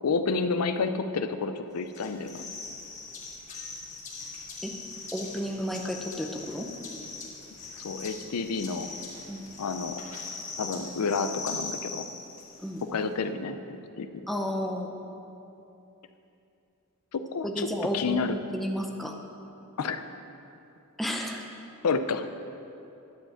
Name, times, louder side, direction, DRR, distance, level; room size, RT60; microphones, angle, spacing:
voice 1, 0.0-2.4 7.8-8.9 9.6-10.0 10.6-12.0 12.9-13.6 14.0-14.3 17.1-17.7 17.9-18.4 19.8-20.0 21.8-22.3, left 4 dB, 85° left, 9 dB, 0.5 m, -29 dB
sound 1, 1.9-12.8, left 4 dB, 35° left, 1.9 m, -41 dB
voice 2, 5.1-6.7 9.3-9.5 12.6-12.8 14.3-14.9 17.4-19.1 21.0-21.4, equal, ahead, 1 dB, 0.7 m, -32 dB
11.5 x 4.9 x 7.7 m, 2.8 s
head